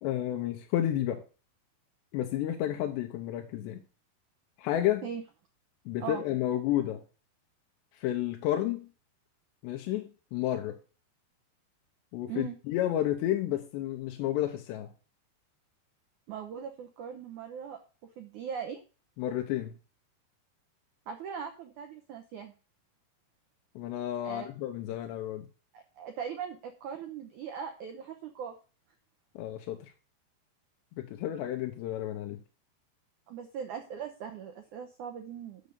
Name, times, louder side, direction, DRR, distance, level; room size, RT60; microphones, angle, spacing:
voice 1, 0.0-1.2 2.1-3.8 4.6-5.1 5.9-7.0 8.0-8.9 9.6-10.8 12.1-14.9 19.2-19.7 23.8-25.5 29.4-29.8 31.0-32.4, left 12 dB, 85° left, 3.1 m, -31 dB
voice 2, 16.3-17.8 18.2-18.8 21.1-22.6 24.2-24.5 25.7-28.6 33.3-35.6, right 7 dB, 85° right, 1.7 m, -40 dB
7.3 x 6.6 x 6.8 m
omnidirectional pair, 4.9 m